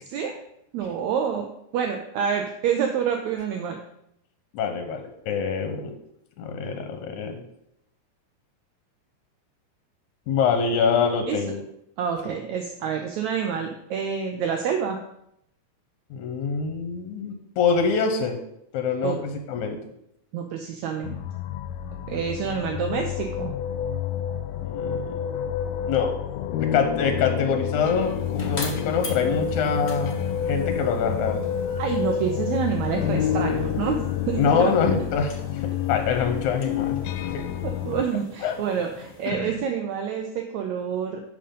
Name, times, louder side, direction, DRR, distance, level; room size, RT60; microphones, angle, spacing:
voice 1, 0.7-1.5 1.7-3.8 11.3-11.4 12.0-15.0 19.0-19.2 20.3-21.2 22.1-23.5 31.8-34.7 37.6-41.2, right 7 dB, 75° right, 3 dB, 1.9 m, -27 dB
voice 2, 4.5-5.9 6.4-7.4 10.3-11.6 16.1-18.4 18.7-19.8 24.6-25.2 25.9-26.2 26.6-31.4 34.4-37.0 37.3-37.4 38.4-38.6 39.3-39.5, left 6 dB, 75° left, 5 dB, 2.2 m, -25 dB
sound 1, 21.0-38.0, left 9 dB, 90° left, 2.2 m, -29 dB
sound 2, 27.6-39.3, left 3 dB, 40° left, 0.8 m, -44 dB
10.5 x 6.8 x 3.8 m, 0.77 s
omnidirectional pair, 3.7 m